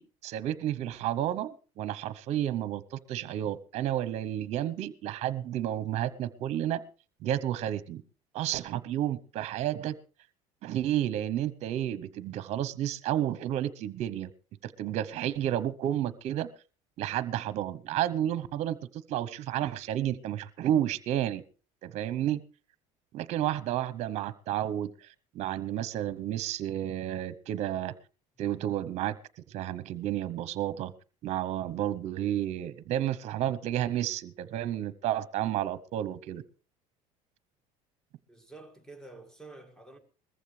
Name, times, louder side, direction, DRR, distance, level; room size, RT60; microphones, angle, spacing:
voice 1, 0.0-6.8 7.2-8.0 8.3-10.0 10.6-14.3 14.6-16.5 17.0-21.4 21.8-22.4 23.1-25.1 25.3-27.9 28.4-29.2 29.5-30.9 31.2-36.4, right 12 dB, 50° right, 0.8 m, -31 dB
voice 2, 38.3-40.0, right 3 dB, 5° left, 2.0 m, -49 dB
20.5 x 14.5 x 3.3 m
cardioid pair, 130°, 14 cm